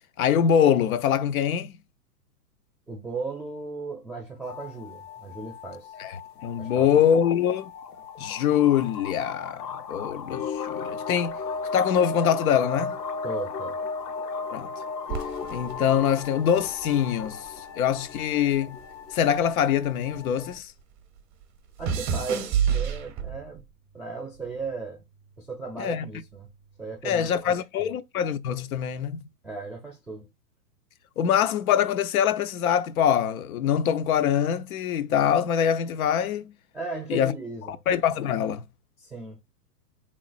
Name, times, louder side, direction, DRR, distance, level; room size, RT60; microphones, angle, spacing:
voice 1, 0.2-1.7 6.0-7.7 8.2-11.3 11.7-13.0 14.5-14.7 15.5-17.5 17.8-18.8 19.1-20.7 25.8-26.1 27.0-29.2 31.2-36.5 37.1-37.3 37.7-38.6, left 9 dB, 60° left, 0.6 m, -24 dB
voice 2, 2.9-6.0 6.6-6.9 13.2-13.8 21.8-23.6 23.9-25.0 25.4-26.5 26.8-27.9 29.4-30.3 36.7-37.8 39.0-39.4, right 3 dB, ahead, 0.3 m, -36 dB
sound 1, 4.4-20.6, left 5 dB, 75° left, 0.9 m, -36 dB
sound 2, 15.1-17.6 17.9-20.5 20.8-23.6 24.3-24.7, right 7 dB, 25° right, 0.7 m, -30 dB
3.7 x 3.1 x 2.4 m
hypercardioid pair, 130°, 49 cm